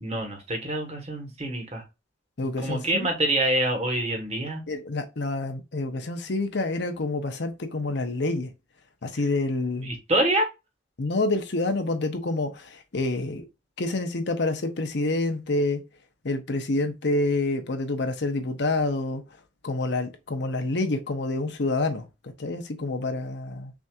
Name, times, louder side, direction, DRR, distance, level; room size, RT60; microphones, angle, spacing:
voice 1, 0.0-1.8 2.6-4.6 9.8-10.5, right 1 dB, 35° right, 1.3 m, -26 dB
voice 2, 2.4-3.1 4.7-8.5 9.0-9.9 11.0-13.4 13.8-15.8 16.2-19.2 19.6-23.7, left 2 dB, 65° left, 0.8 m, -27 dB
6.1 x 2.7 x 2.4 m
head